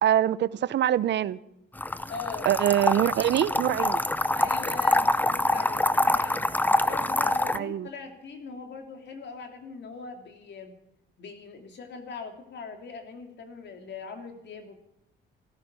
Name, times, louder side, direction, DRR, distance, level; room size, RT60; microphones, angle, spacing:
voice 1, 0.0-1.4 2.5-4.0 7.5-7.9, right 11 dB, 65° right, 18 dB, 0.7 m, -24 dB
sound 1, 1.8-7.6, left 2 dB, 10° left, 0.6 m, -25 dB
voice 2, 2.1-2.5 4.4-6.5 6.8-10.7 11.2-14.8, left 5 dB, 60° left, 4 dB, 3.0 m, -41 dB
14.5 x 13.5 x 6.9 m, 0.80 s
cardioid pair, 90°, 20 cm